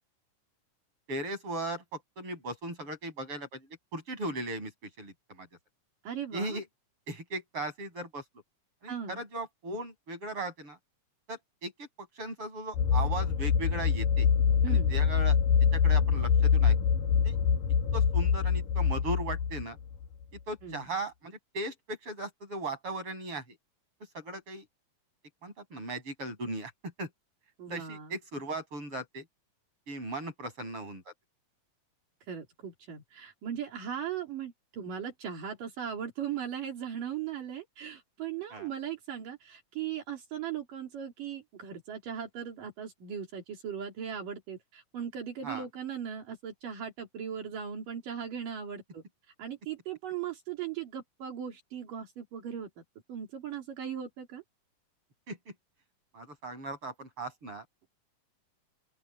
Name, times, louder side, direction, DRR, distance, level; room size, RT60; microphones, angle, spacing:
voice 1, 1.1-4.7 5.0-5.5 6.3-6.7 7.1-8.2 8.8-10.8 11.3-11.9 12.2-14.3 14.7-15.4 15.7-16.8 17.2-17.3 17.9-19.8 20.5-23.6 24.1-24.7 25.4-26.7 27.0-27.1 27.7-29.3 29.9-31.1 38.5-38.7 45.4-45.7 55.3-55.4 56.1-57.7, right 2 dB, 40° right, 7.5 m, -37 dB
voice 2, 6.0-6.6 8.9-9.2 14.6-14.9 20.6-20.8 27.6-28.2 32.3-49.0 49.4-52.8 53.1-54.4, right 8 dB, 75° right, 4.9 m, -38 dB
sound 1, 12.7-20.1, left 7 dB, 80° left, 3.4 m, -25 dB
open air
omnidirectional pair, 3.8 m